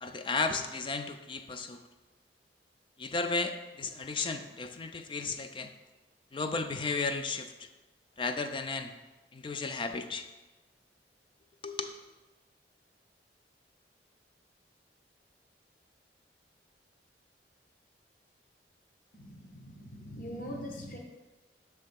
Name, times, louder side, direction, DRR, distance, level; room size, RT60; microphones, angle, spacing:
voice 1, 0.0-1.8 3.0-5.7 6.3-7.7 8.2-8.9 9.3-10.3 11.6-11.9, left 4 dB, 30° left, 8 dB, 0.4 m, -34 dB
voice 2, 19.1-21.0, equal, 50° left, 0 dB, 0.9 m, -42 dB
6.4 x 3.3 x 5.2 m, 1.2 s
head